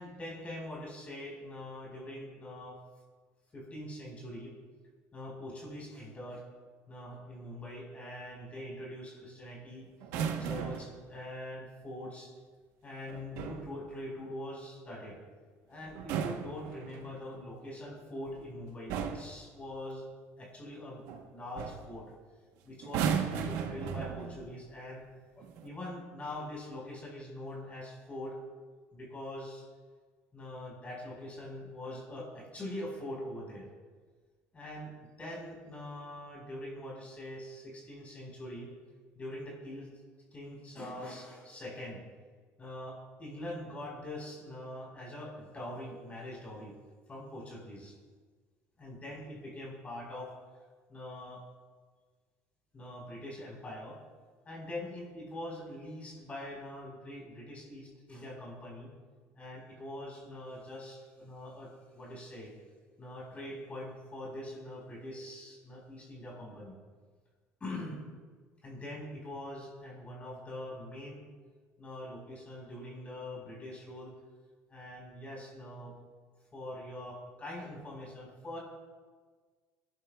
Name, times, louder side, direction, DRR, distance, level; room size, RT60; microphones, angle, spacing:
voice 1, 0.0-2.8 3.5-4.6 5.1-6.4 6.9-9.9 10.4-12.3 12.8-15.2 15.7-20.0 20.4-22.1 22.6-25.0 25.4-28.4 28.9-29.6 30.3-33.7 34.5-38.7 39.1-39.9 40.3-42.0 42.6-46.7 47.1-47.9 48.8-50.3 50.9-51.4 52.7-54.0 54.4-58.9 59.3-62.6 63.0-66.8 67.6-68.0 68.6-71.3 71.8-74.1 74.7-75.9 76.5-78.6, left 1 dB, 25° left, -3 dB, 4.6 m, -43 dB
sound 1, 10.0-11.0 13.1-13.7 15.9-17.2 18.3-18.5 18.9-19.4 21.1-21.3 21.6-21.9 22.8-24.5 25.4-25.7, right 7 dB, 85° right, 1.1 m, -35 dB
24.5 x 11.5 x 2.4 m, 1.5 s
cardioid pair, 130°, 5 cm